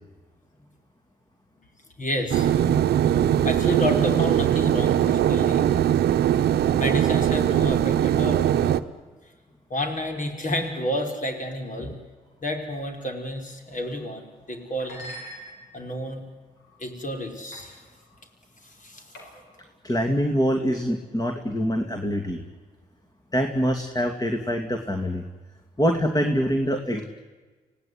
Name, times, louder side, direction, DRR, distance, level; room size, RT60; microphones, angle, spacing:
voice 1, 2.0-2.5 3.4-6.0 6.8-8.5 9.7-11.9 12.4-15.1 15.7-16.2 16.8-17.8 18.6-19.4, left 1 dB, 50° left, 3 dB, 5.4 m, -30 dB
sound 1, 2.3-8.8, right 10 dB, 80° right, 0.8 m, -21 dB
sound 2, 13.9-14.1 14.8-16.0 16.6-16.9 17.5-17.7 18.0-18.2 19.1-19.6, equal, 90° left, 5.4 m, -43 dB
voice 2, 19.8-22.4 23.3-25.2 25.8-27.0, equal, 20° left, 5 dB, 2.6 m, -24 dB
25.5 x 17.5 x 9.8 m, 1.3 s
supercardioid pair, 45°, 17 cm